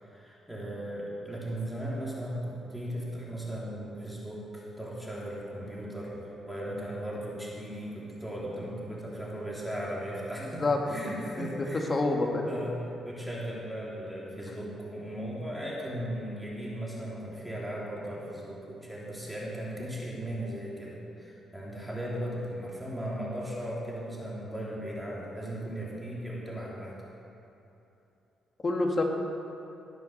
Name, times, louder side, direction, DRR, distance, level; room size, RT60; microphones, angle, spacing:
voice 1, 0.0-11.9 12.5-26.9, right 1 dB, ahead, -5 dB, 3.1 m, -37 dB
voice 2, 10.4-10.8 11.4-12.6 28.6-29.0, left 2 dB, 30° left, 1 dB, 2.0 m, -28 dB
19.0 x 7.2 x 6.7 m, 3.0 s
cardioid pair, 90°, 0 cm